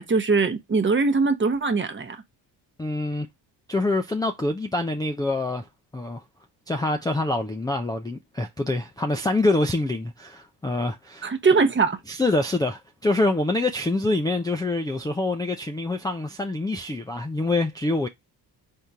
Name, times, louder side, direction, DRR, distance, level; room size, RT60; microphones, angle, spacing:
voice 1, 0.0-2.2 11.2-12.0, right 4 dB, 25° right, 0.9 m, -21 dB
voice 2, 2.8-3.3 3.7-5.7 5.9-6.2 6.7-11.3 12.1-18.1, left 2 dB, 10° left, 0.4 m, -25 dB
3.6 x 2.8 x 4.4 m
supercardioid pair, 75°, 45 cm